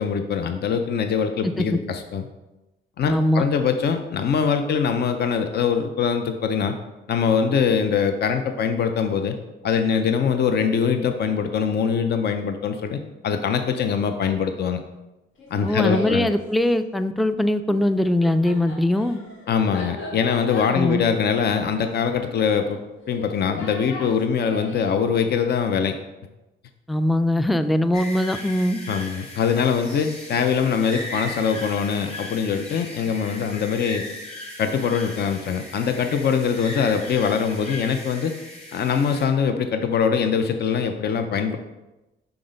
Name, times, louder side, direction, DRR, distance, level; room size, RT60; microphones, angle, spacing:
voice 1, 0.0-2.2 3.0-6.7 7.1-9.3 9.6-14.8 15.5-16.3 19.5-22.8 23.1-26.0 28.9-34.0 34.6-38.3 38.7-41.6, left 6 dB, 55° left, 7 dB, 0.6 m, -23 dB
voice 2, 1.4-1.8 3.1-3.4 15.6-19.2 20.7-21.0 26.9-28.8, left 1 dB, ahead, 11 dB, 0.3 m, -21 dB
Laughter, 15.4-16.4 17.7-25.0, left 2 dB, 75° left, 1.2 m, -37 dB
sound 1, 27.9-39.2, left 1 dB, 35° left, 2.1 m, -38 dB
6.0 x 3.9 x 5.2 m, 1.0 s
cardioid pair, 90°, 20 cm